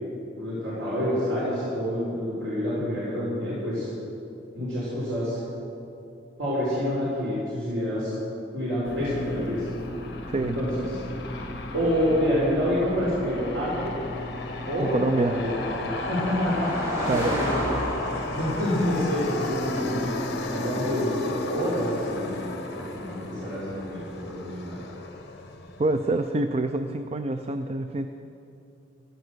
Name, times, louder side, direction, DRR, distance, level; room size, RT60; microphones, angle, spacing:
voice 1, 0.4-3.9 4.5-5.4 6.4-8.1 8.5-9.7 10.4-11.0 11.7-14.0 14.7-15.6 16.1-17.7 18.3-20.1 20.5-22.4 22.7-24.8, equal, 75° right, -8 dB, 4.5 m, -27 dB
Aircraft, 8.8-26.3, left 2 dB, 60° left, 1.4 m, -35 dB
Car passing by, 10.8-24.3, equal, 15° right, 4.8 m, -36 dB
voice 2, 14.8-15.3 17.1-17.4 25.8-28.1, right 2 dB, 30° right, 8 dB, 0.5 m, -26 dB
14.5 x 13.5 x 6.2 m, 2.7 s
head